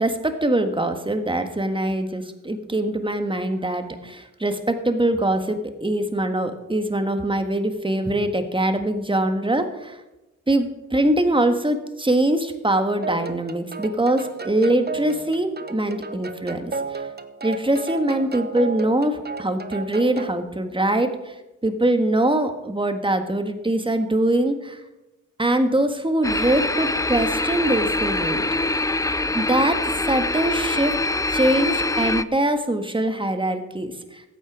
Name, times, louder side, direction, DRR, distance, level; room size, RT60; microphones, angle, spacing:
voice 1, 0.0-10.0 10.5-17.1 17.4-21.3 21.6-24.8 25.4-28.5 28.7-28.8 29.3-31.0 31.3-34.2, right 1 dB, 15° right, 7 dB, 1.6 m, -23 dB
sound 1, 13.0-20.4, right 4 dB, 30° right, 1.0 m, -34 dB
sound 2, 26.2-32.2, left 2 dB, 10° left, 0.5 m, -24 dB
14.0 x 8.9 x 4.9 m, 1.0 s
cardioid pair, 55°, 31 cm